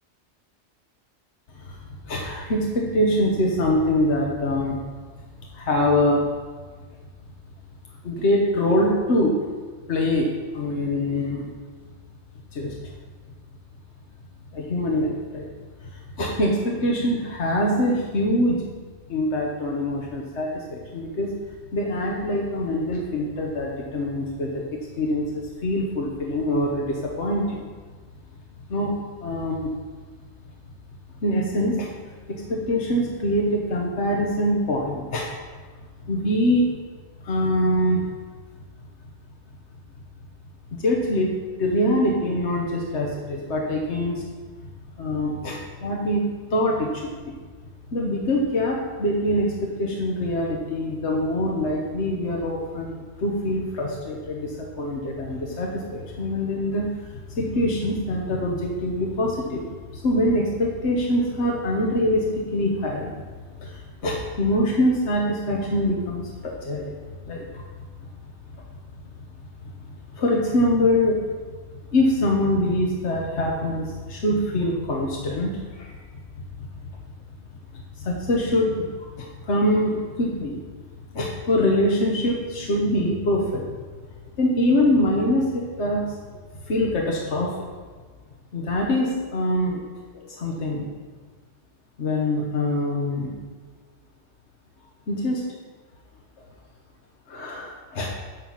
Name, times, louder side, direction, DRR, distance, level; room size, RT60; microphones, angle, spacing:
voice 1, 2.1-4.8 5.5-6.2 8.0-9.4 9.9-10.3 10.5-11.4 12.5-12.7 14.5-15.5 15.8-18.6 19.1-21.3 21.7-24.6 25.0-25.3 25.6-27.6 28.7-28.9 29.2-29.7 31.2-31.9 32.3-35.3 36.1-36.7 37.2-38.0 40.7-44.2 45.0-46.2 46.5-47.3 47.9-59.6 59.9-63.1 63.6-66.9 67.3-67.6 68.0-68.1 69.6-69.7 70.1-71.2 71.9-76.0 76.4-76.7 78.0-78.8 79.2-80.6 81.1-83.6 84.4-86.1 86.7-87.6 88.5-89.8 90.1-90.9 92.0-93.3 95.1-95.4 97.3-98.1, left 1 dB, 70° left, -2 dB, 1.4 m, -24 dB
7.7 x 7.2 x 5.7 m, 1.5 s
omnidirectional pair, 1.2 m